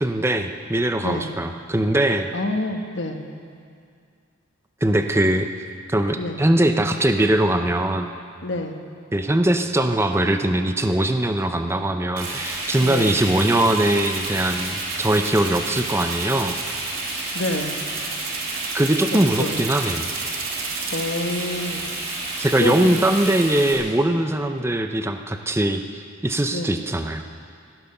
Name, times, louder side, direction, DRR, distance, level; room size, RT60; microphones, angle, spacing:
voice 1, 0.0-2.3 4.8-5.5 5.9-8.1 9.1-16.6 18.7-20.1 22.4-27.2, right 1 dB, 10° right, 6 dB, 0.6 m, -21 dB
voice 2, 2.3-3.2 6.2-6.4 8.4-8.8 12.8-13.1 17.3-17.7 19.1-19.6 20.9-21.8 22.6-23.0 26.5-26.8, left 2 dB, 55° left, 5 dB, 1.2 m, -27 dB
Frying (food), 12.2-23.7, right 2 dB, 45° right, 4.6 m, -30 dB
sound 1, 14.0-21.0, right 9 dB, 70° right, 1.3 m, -35 dB
16.5 x 13.0 x 6.7 m, 2.3 s
head